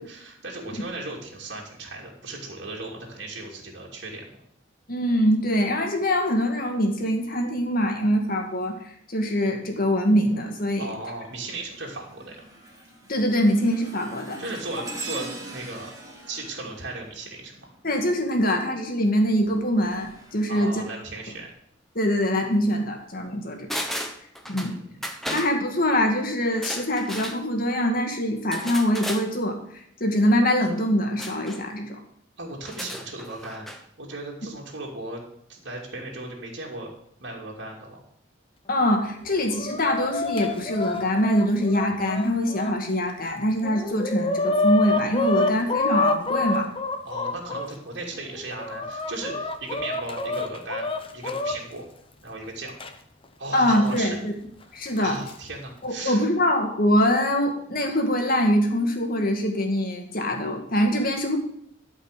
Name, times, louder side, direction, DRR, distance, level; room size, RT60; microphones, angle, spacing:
voice 1, 0.1-4.3 10.8-12.4 14.4-15.9 16.3-17.7 20.5-21.5 24.4-24.9 32.4-33.7 34.0-35.2 35.5-36.9 37.2-38.0 47.0-51.9 52.2-52.7 53.4-54.2 54.9-56.3, right 2 dB, 60° right, -2 dB, 2.6 m, -36 dB
voice 2, 4.9-10.9 13.1-14.4 17.8-20.9 22.0-23.8 24.5-24.7 25.3-32.0 38.7-46.7 53.5-54.3 54.7-55.2 55.8-61.4, equal, 50° left, 3 dB, 2.1 m, -24 dB
sound 1, 10.3-10.7 11.2-18.0 19.2-21.4 22.1-22.3 23.2-23.3, right 2 dB, 20° right, 2.5 m, -43 dB
sound 2, 23.7-24.7 25.0-25.5 26.5-27.4 28.5-29.2 31.2-31.6 32.6-33.8 34.1-34.2, equal, ahead, 1.1 m, -34 dB
Chicken rooster, 39.2-42.7 43.3-43.4 43.6-47.7 48.3-51.5 52.8-52.9 53.9-54.0 55.0-55.3, left 2 dB, 30° left, 0.9 m, -27 dB
12.5 x 5.4 x 6.7 m, 0.71 s
head